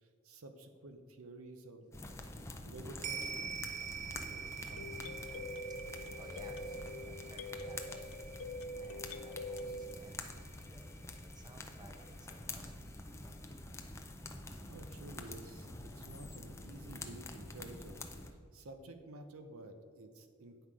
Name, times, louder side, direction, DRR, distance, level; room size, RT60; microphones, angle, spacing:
voice 1, 0.2-2.2 2.6-3.5 4.0-5.0 14.7-20.7, right 2 dB, 80° right, 7 dB, 0.8 m, -52 dB
sound 1, 1.9-18.3, left 2 dB, 15° left, 0.6 m, -47 dB
sound 2, 3.0-11.6 11.9-12.0, right 7 dB, 35° right, 0.5 m, -46 dB
sound 3, 4.8-10.0, left 1 dB, 90° left, 0.5 m, -44 dB
voice 2, 6.1-8.2 8.8-10.9 11.2-13.5 16.2-16.3, right 1 dB, 20° right, 3 dB, 0.9 m, -58 dB
9.1 x 5.8 x 4.8 m, 2.2 s
head